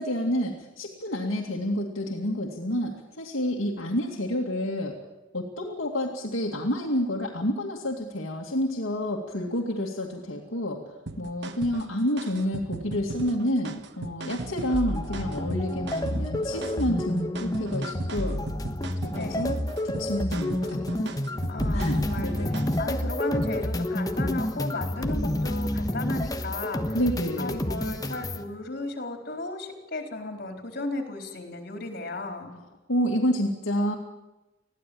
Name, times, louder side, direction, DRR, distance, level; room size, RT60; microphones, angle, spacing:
voice 1, 0.0-5.0 5.3-10.8 11.2-18.4 19.0-19.6 19.8-21.1 21.7-22.5 26.9-27.8 32.9-33.9, equal, 70° left, -1 dB, 2.4 m, -29 dB
sound 1, 11.1-22.9, right 2 dB, 55° right, 1.3 m, -38 dB
sound 2, 14.7-28.4, left 1 dB, 20° left, 1.1 m, -29 dB
voice 2, 19.1-19.5 21.5-27.0 27.4-32.5, left 2 dB, 50° left, 4 dB, 4.0 m, -35 dB
21.5 x 15.5 x 8.7 m, 1.1 s
head